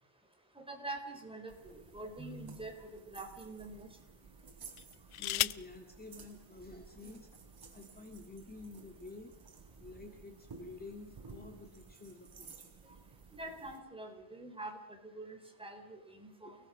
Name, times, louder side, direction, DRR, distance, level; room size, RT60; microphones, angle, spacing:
voice 1, 0.6-3.9 13.3-16.6, right 2 dB, 10° right, 3 dB, 4.3 m, -45 dB
sound 1, 1.0-2.2 2.9-3.1 4.7-5.8 6.9-7.0 7.3-7.7, left 13 dB, 80° left, 0.7 m, -37 dB
Janitor's Keys, 1.5-13.8, right 4 dB, 50° right, 4.3 m, -55 dB
voice 2, 5.1-7.3 7.7-9.3 9.8-12.7 16.4-16.5, left 3 dB, 20° left, 3 dB, 2.1 m, -50 dB
29.5 x 18.5 x 6.4 m, 0.95 s
wide cardioid pair, 165°, 49 cm